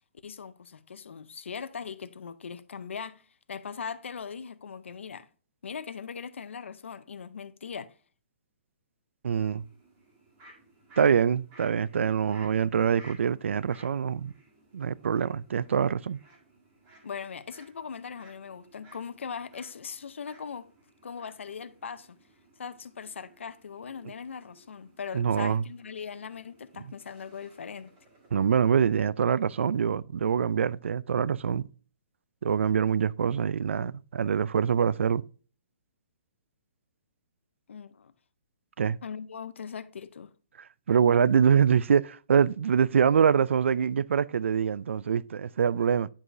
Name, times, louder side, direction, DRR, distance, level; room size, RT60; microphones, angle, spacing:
voice 1, 0.2-3.2 3.5-5.3 5.6-8.0 17.0-20.7 21.0-22.2 22.6-27.9 37.7-38.1 39.0-40.3, left 6 dB, 90° left, 0.6 m, -40 dB
voice 2, 9.2-9.6 11.0-14.3 14.7-16.2 25.1-25.6 28.3-31.7 32.4-35.2 38.8-39.0 40.9-46.1, right 7 dB, 85° right, 0.3 m, -24 dB
sound 1, 9.3-28.3, right 2 dB, 20° right, 1.8 m, -58 dB
9.9 x 4.7 x 2.6 m
hypercardioid pair, 170°, 6 cm